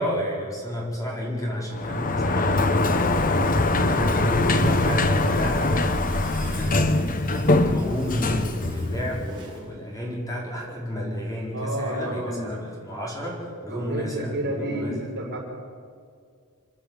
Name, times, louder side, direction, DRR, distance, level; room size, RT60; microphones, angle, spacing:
voice 1, 0.0-5.7 6.4-15.1, equal, 15° left, -2 dB, 4.7 m, -31 dB
Sliding door, 1.7-9.5, left 2 dB, 40° left, 1.1 m, -23 dB
sound 1, 3.9-9.7 11.0-11.1, right 5 dB, 20° right, 7.2 m, -50 dB
voice 2, 11.5-12.5 13.7-15.4, right 1 dB, 50° right, -2 dB, 5.5 m, -30 dB
27.5 x 12.0 x 8.3 m, 2.1 s
head